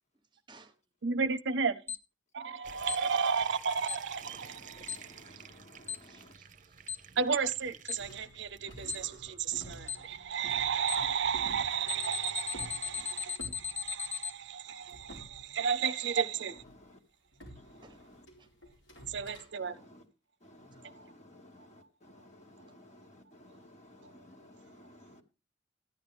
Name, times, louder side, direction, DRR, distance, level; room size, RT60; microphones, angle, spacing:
voice 1, 0.3-0.8 5.1-5.4 6.0-7.2 12.9-13.1 17.8-18.0 18.4-18.5 20.7-20.8, right 3 dB, 25° right, 1.3 m, -60 dB
voice 2, 1.0-1.8 2.3-5.0 7.2-16.6 19.1-19.8 20.9-21.0, right 6 dB, 70° right, 0.6 m, -33 dB
Alarm, 1.9-2.0 2.9-3.0 3.9-4.0 4.9-5.0 5.9-6.0 6.9-7.0 7.9-8.0 8.9-9.0 9.9-10.0 10.9-11.0 11.9-14.3, left 7 dB, 10° left, 0.5 m, -36 dB
sound 1, 2.6-13.9, right 7 dB, 40° right, 0.9 m, -53 dB
voice 3, 4.2-6.3 16.3-17.0 17.5-18.3 19.6-20.0 20.4-25.2, left 1 dB, 40° left, 2.2 m, -56 dB
sound 2, 8.0-14.5 14.8-16.2 16.6-16.8 17.3-19.5, equal, 85° left, 4.6 m, -51 dB
14.0 x 10.5 x 3.4 m
head